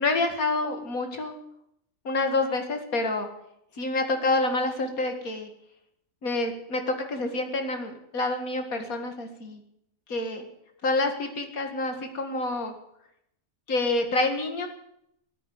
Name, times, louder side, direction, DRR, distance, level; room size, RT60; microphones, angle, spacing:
voice 1, 0.0-1.4 2.0-3.3 3.8-5.5 6.2-9.6 10.1-10.4 10.8-12.7 13.7-14.7, left 2 dB, 85° left, 5 dB, 2.4 m, -27 dB
14.5 x 9.9 x 9.6 m, 0.76 s
omnidirectional pair, 1.5 m